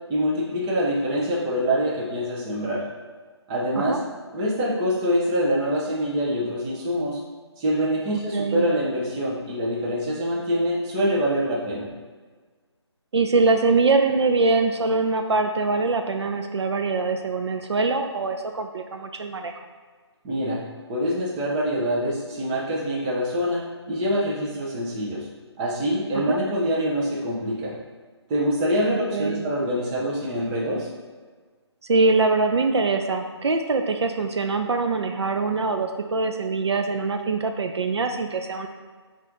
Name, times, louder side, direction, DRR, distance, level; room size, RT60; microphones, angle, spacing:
voice 1, 0.1-2.8 3.5-4.0 4.3-7.2 7.6-11.9 20.2-20.6 20.9-23.6 23.9-25.3 25.6-27.8 28.3-30.9, equal, 15° right, -5 dB, 0.5 m, -25 dB
voice 2, 8.1-8.7 13.1-19.5 26.1-26.4 28.9-29.4 31.9-38.7, right 3 dB, 70° right, 5 dB, 0.4 m, -23 dB
4.2 x 2.5 x 3.7 m, 1.5 s
figure-of-eight pair, 150°, 15 cm